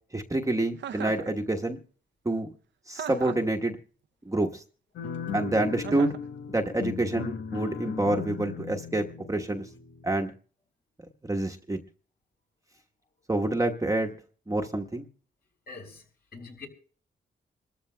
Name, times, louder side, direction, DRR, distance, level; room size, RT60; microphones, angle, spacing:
voice 1, 0.1-1.8 2.2-2.5 2.9-3.8 4.3-4.6 5.3-6.1 6.5-9.6 10.0-10.3 11.3-11.8 13.3-14.1 14.5-15.1, right 2 dB, 15° right, 1.1 m, -27 dB
Chuckle chortle, 0.8-1.3 2.9-3.5 5.8-6.3, right 9 dB, 65° right, 0.6 m, -37 dB
sound 1, 5.0-10.3, left 7 dB, 80° left, 1.0 m, -37 dB
voice 2, 15.7-16.7, left 4 dB, 55° left, 4.5 m, -45 dB
27.0 x 13.5 x 2.2 m
cardioid pair, 80°, 20 cm